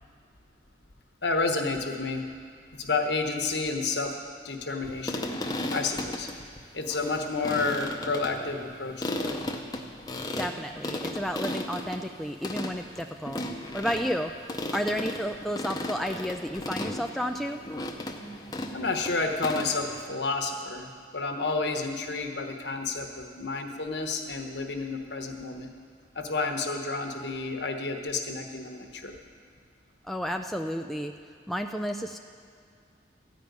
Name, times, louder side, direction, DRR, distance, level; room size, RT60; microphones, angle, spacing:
voice 1, 1.2-2.2 2.8-4.1 4.4-5.3 5.7-6.3 6.7-9.4 18.7-25.7 26.1-29.1, left 3 dB, 70° left, 3 dB, 1.1 m, -30 dB
sound 1, 4.8-20.0, left 1 dB, 20° left, 0.7 m, -35 dB
voice 2, 10.4-13.4 13.7-14.3 14.7-17.6 30.1-31.1 31.5-32.2, equal, ahead, 3 dB, 0.3 m, -31 dB
14.0 x 5.2 x 9.3 m, 2.3 s
head